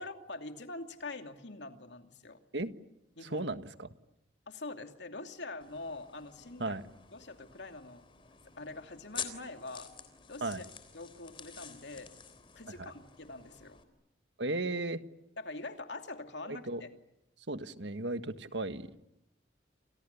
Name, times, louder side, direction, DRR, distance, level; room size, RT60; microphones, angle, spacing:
voice 1, 0.0-2.4 3.2-3.4 4.5-6.7 7.1-8.0 8.6-9.9 10.3-10.6 10.9-12.1 12.5-13.8 15.4-16.9, left 2 dB, 70° left, 5 dB, 2.7 m, -44 dB
voice 2, 3.2-3.9 6.6-6.8 10.4-10.6 12.7-12.9 14.4-15.0 16.4-16.8 17.5-18.9, right 2 dB, 75° right, 10 dB, 1.5 m, -35 dB
sound 1, 5.6-13.8, left 7 dB, 30° left, 3.6 m, -48 dB
29.5 x 28.0 x 7.0 m, 0.87 s
head